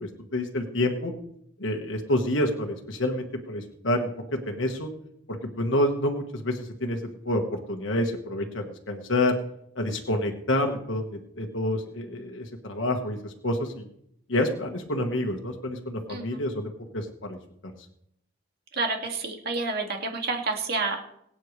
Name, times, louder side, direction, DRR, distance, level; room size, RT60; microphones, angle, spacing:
voice 1, 0.0-1.1 1.6-4.9 5.3-7.0 7.2-9.3 9.7-13.9 14.3-17.4, left 1 dB, 65° left, 2 dB, 1.4 m, -28 dB
voice 2, 16.1-16.4 18.8-21.0, right 3 dB, 50° right, 2 dB, 2.2 m, -29 dB
22.5 x 8.9 x 3.3 m, 0.73 s
head